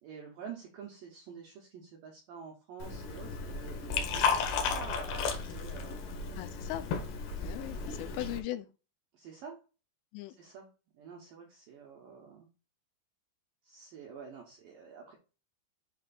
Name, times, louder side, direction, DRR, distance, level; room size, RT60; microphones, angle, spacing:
voice 1, 0.0-6.0 9.1-9.6 10.4-12.5 13.6-15.1, right 6 dB, 80° right, 2.0 m, -48 dB
Liquid, 2.8-8.4, left 5 dB, 70° left, 2.0 m, -34 dB
voice 2, 6.4-6.8 7.4-8.7 10.1-10.3, left 14 dB, 90° left, 3.2 m, -38 dB
7.8 x 3.3 x 4.0 m
omnidirectional pair, 5.4 m